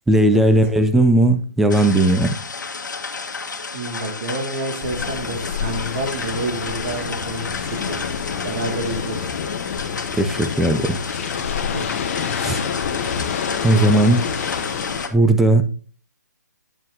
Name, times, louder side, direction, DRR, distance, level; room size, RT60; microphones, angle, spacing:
voice 1, 0.1-2.3 10.2-11.0 12.4-12.6 13.6-14.3 15.1-15.6, right 1 dB, 5° right, 0.4 m, -16 dB
sound 1, 1.7-15.1, left 4 dB, 80° left, 1.5 m, -32 dB
voice 2, 3.7-8.0 8.4-9.3 11.7-11.9, right 2 dB, 45° right, 2.3 m, -29 dB
sound 2, 4.8-15.1, left 7 dB, 45° left, 1.0 m, -28 dB
9.4 x 7.5 x 2.7 m
hypercardioid pair, 150°, 10 cm